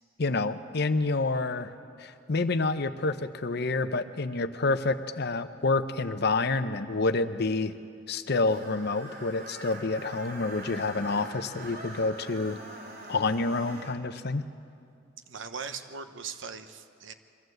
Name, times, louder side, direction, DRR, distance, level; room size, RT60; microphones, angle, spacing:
voice 1, 0.2-1.7 2.0-7.7 8.1-12.6 13.1-14.4, left 3 dB, 55° left, 11 dB, 0.8 m, -28 dB
Screech, 8.4-14.0, right 2 dB, 55° right, 3.3 m, -44 dB
voice 2, 15.3-17.1, right 5 dB, 75° right, 9 dB, 1.0 m, -39 dB
23.5 x 14.5 x 8.0 m, 2.4 s
head